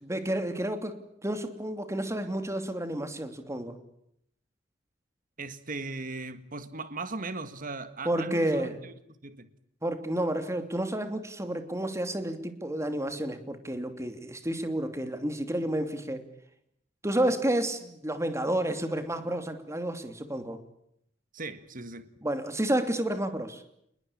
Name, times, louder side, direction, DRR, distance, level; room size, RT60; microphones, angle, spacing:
voice 1, 0.0-3.8 8.0-8.8 9.8-16.2 17.0-20.6 22.2-23.6, right 1 dB, 15° right, 8 dB, 2.9 m, -30 dB
voice 2, 5.4-8.9 9.2-9.5 17.2-17.3 21.3-22.1, right 3 dB, 50° right, 11 dB, 1.7 m, -38 dB
28.5 x 21.0 x 8.7 m, 0.74 s
head